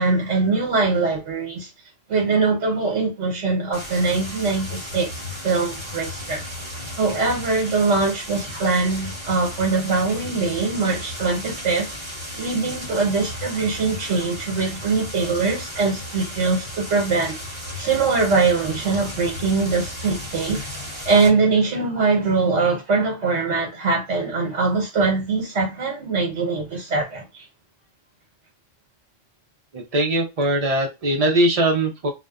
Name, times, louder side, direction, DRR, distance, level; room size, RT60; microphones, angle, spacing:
voice 1, 0.0-1.7 2.1-5.1 5.4-6.5 7.0-11.9 12.4-17.4 17.8-20.6 21.0-27.5, right 4 dB, 65° right, 1.1 m, -22 dB
sound 1, 3.7-21.3, left 1 dB, 25° right, 0.9 m, -34 dB
voice 2, 29.7-32.1, right 1 dB, 40° right, 0.5 m, -21 dB
2.6 x 2.2 x 2.3 m
omnidirectional pair, 1.3 m